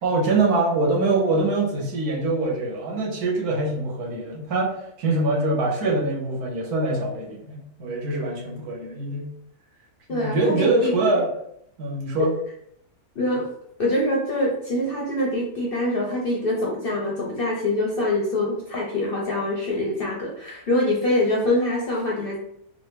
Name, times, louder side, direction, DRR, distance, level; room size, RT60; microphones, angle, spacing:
voice 1, 0.0-9.3 10.1-11.3 11.8-12.3, right 2 dB, 80° right, -3 dB, 1.4 m, -24 dB
voice 2, 10.1-10.9 13.1-13.5 13.8-22.4, left 1 dB, 55° left, -3 dB, 0.6 m, -24 dB
3.7 x 2.1 x 3.0 m, 0.71 s
omnidirectional pair, 1.6 m